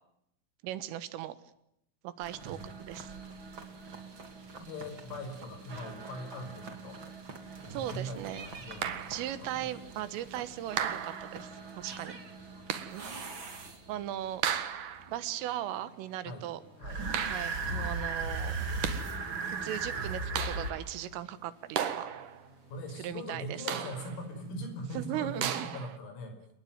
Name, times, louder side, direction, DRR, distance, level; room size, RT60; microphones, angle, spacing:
voice 1, 0.6-1.4 2.0-3.2 7.7-8.5 9.1-12.2 12.9-13.2 13.9-14.4 15.1-16.6 17.3-18.5 19.5-22.1 23.0-23.7 25.0-25.7, right 12 dB, 75° right, 14 dB, 3.9 m, -38 dB
sound 1, 2.2-14.1 16.8-20.7, right 3 dB, 30° right, 2.7 m, -39 dB
voice 2, 4.6-7.0 7.7-9.7 11.8-12.2 12.5-12.7 16.2-16.5 16.8-17.1 22.7-26.4, equal, 85° left, 7 dB, 8.5 m, -41 dB
sound 2, 8.8-9.4 10.8-11.5 12.7-13.1 14.4-15.2 17.1-17.8 18.6-19.2 20.4-21.0 21.7-22.5 23.7-24.3 25.4-26.0, right 9 dB, 60° right, 2.2 m, -35 dB
sound 3, 12.4-23.5, left 3 dB, 50° left, 6.9 m, -60 dB
29.0 x 20.0 x 9.4 m, 0.79 s
omnidirectional pair, 6.0 m